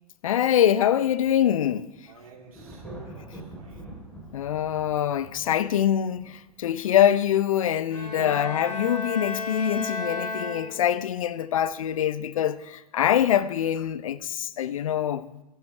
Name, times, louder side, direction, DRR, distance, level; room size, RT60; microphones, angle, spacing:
voice 1, 0.2-1.9 4.3-15.4, left 10 dB, 60° left, 0.7 m, -24 dB
Thunder, 1.9-7.3, right 1 dB, 5° left, 4.0 m, -45 dB
voice 2, 2.1-4.0 8.2-8.4, right 4 dB, 65° right, 3.7 m, -46 dB
Bowed string instrument, 7.9-11.1, left 3 dB, 80° left, 5.0 m, -33 dB
28.5 x 11.5 x 3.4 m
figure-of-eight pair, 105°, 20 cm